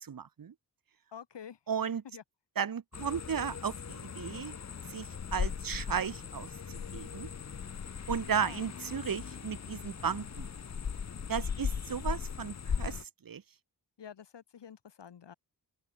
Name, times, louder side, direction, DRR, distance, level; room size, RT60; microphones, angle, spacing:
voice 1, 0.0-0.5 1.7-2.0 2.5-4.6 4.9-7.3 8.1-10.5 11.3-13.4, right 7 dB, 55° right, 1.4 m, -35 dB
voice 2, 1.1-1.6 2.1-2.2 8.4-8.6 14.0-15.3, left 8 dB, 85° left, 3.1 m, -48 dB
sound 1, 2.9-13.0, left 6 dB, 40° left, 1.0 m, -38 dB
wide cardioid pair, 130°, 41 cm